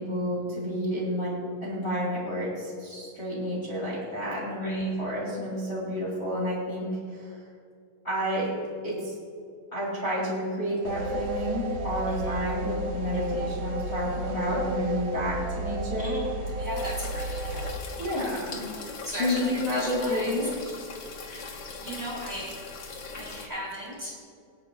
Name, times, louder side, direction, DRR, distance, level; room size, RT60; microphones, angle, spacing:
voice 1, 0.0-7.4 8.0-8.5 8.8-9.1 9.7-16.2 18.0-18.6 19.2-20.5, equal, 25° left, -7 dB, 2.1 m, -30 dB
voice 2, 4.6-4.9 12.1-12.4 13.3-13.5 15.9-18.4 19.0-20.4 21.3-22.5 23.1-24.2, equal, 15° right, -5 dB, 2.9 m, -38 dB
sound 1, 10.8-17.7, right 1 dB, 80° right, 2.6 m, -32 dB
sound 2, 16.8-23.5, left 4 dB, 60° left, 1.3 m, -40 dB
25.0 x 8.7 x 2.3 m, 2.3 s
omnidirectional pair, 3.5 m